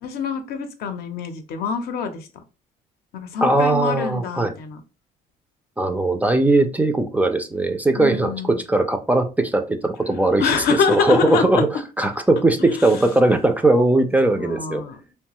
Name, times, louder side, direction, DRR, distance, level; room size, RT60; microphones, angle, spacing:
voice 1, 0.0-2.3 3.1-4.8 8.0-8.6 10.4-11.6 12.6-13.0 14.4-15.1, left 5 dB, 70° left, 7 dB, 0.6 m, -25 dB
voice 2, 3.4-4.5 5.8-10.5 10.9-11.7 12.0-14.8, right 2 dB, 10° right, 7 dB, 0.3 m, -19 dB
2.9 x 2.2 x 2.9 m, 0.31 s
cardioid pair, 110°, 17 cm